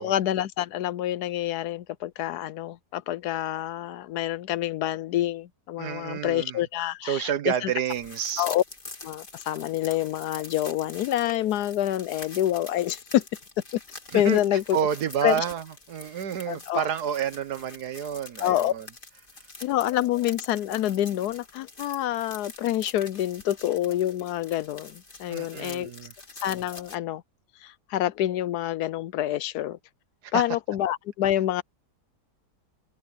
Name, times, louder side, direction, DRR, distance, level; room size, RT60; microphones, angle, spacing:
voice 1, 0.0-7.3 7.6-7.7 8.4-8.6 9.0-13.2 13.7-13.8 14.1-14.8 15.2-15.4 16.5-16.9 18.4-18.7 19.6-25.9 26.4-27.2 27.6-29.8 30.3-31.6, left 13 dB, 75° left, 1.1 m, -27 dB
voice 2, 5.8-6.6 7.0-8.5 14.1-18.9 25.3-26.1 30.2-30.4, right 8 dB, 70° right, 1.6 m, -29 dB
sound 1, 7.9-27.0, left 3 dB, 30° left, 2.3 m, -45 dB
omnidirectional pair, 1.8 m